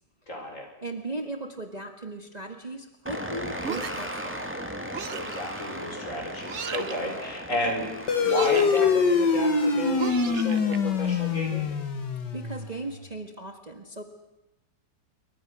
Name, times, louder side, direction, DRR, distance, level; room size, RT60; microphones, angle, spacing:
voice 1, 0.3-0.7 5.1-7.9 8.1-11.7, left 1 dB, 45° left, 2 dB, 6.0 m, -32 dB
voice 2, 0.8-4.4 12.3-14.0, right 2 dB, 25° right, 5 dB, 1.8 m, -37 dB
sound 1, 3.1-11.7, equal, 5° right, 2.4 m, -38 dB
sound 2, 3.6-4.2 4.9-5.4 6.5-7.0 8.2-8.8 10.0-10.8, right 7 dB, 45° right, 1.2 m, -35 dB
sound 3, 8.1-13.0, left 5 dB, 80° left, 2.5 m, -24 dB
27.5 x 24.0 x 6.3 m, 0.95 s
omnidirectional pair, 1.8 m